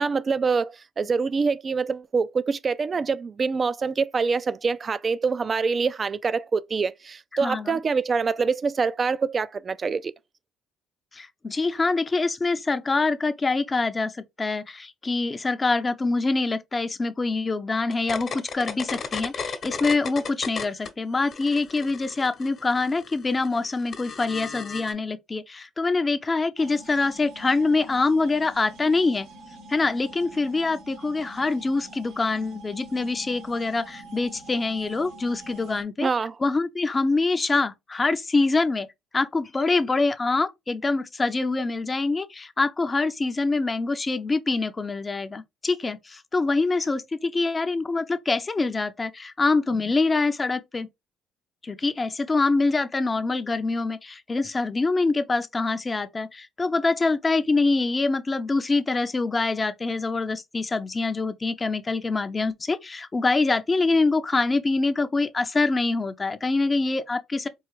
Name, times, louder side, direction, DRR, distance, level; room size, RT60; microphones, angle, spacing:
voice 1, 0.0-10.1 36.0-36.3, right 5 dB, 40° right, 0.4 m, -25 dB
voice 2, 7.4-7.8 11.1-29.3 29.7-36.1 36.4-38.9 39.1-50.9 51.6-67.5, left 3 dB, 25° left, 0.5 m, -25 dB
sound 1, 17.9-20.9 21.2-24.9, left 5 dB, 50° left, 1.0 m, -35 dB
sound 2, 26.6-35.8, right 2 dB, 80° right, 1.4 m, -46 dB
4.6 x 2.4 x 3.1 m
supercardioid pair, 80°, 0 cm